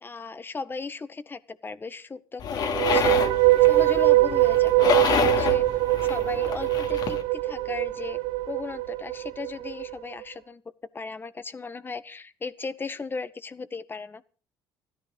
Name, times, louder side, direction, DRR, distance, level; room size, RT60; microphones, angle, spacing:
voice 1, 0.0-3.2 3.6-5.6 6.0-8.2 8.5-10.6 10.9-14.2, left 4 dB, 25° left, 11 dB, 1.7 m, -36 dB
sound 1, 2.4-7.2, left 7 dB, 65° left, 2.8 m, -28 dB
sound 2, 2.6-9.9, right 18 dB, 75° right, 0.9 m, -22 dB
16.0 x 14.0 x 5.4 m, 0.39 s
supercardioid pair, 85°, 8 cm